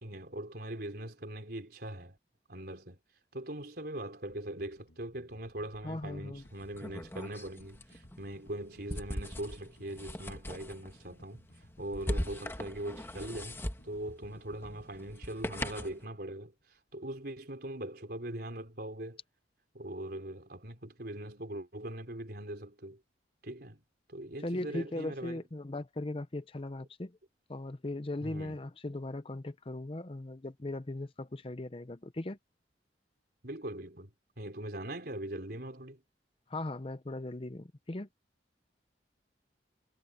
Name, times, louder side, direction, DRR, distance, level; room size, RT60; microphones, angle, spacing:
voice 1, 0.0-2.2 2.5-3.0 3.3-19.2 19.7-23.0 23.4-23.8 24.1-25.4 28.2-28.6 33.4-36.0, right 1 dB, 60° right, 4.4 m, -41 dB
sound 1, 4.3-16.6 16.9-17.1, equal, 85° left, 6.7 m, -60 dB
voice 2, 5.8-6.5 24.4-27.2 27.5-32.4 36.5-38.1, left 2 dB, 30° left, 0.7 m, -38 dB
sound 2, 6.4-16.0, left 1 dB, 15° left, 1.3 m, -41 dB
head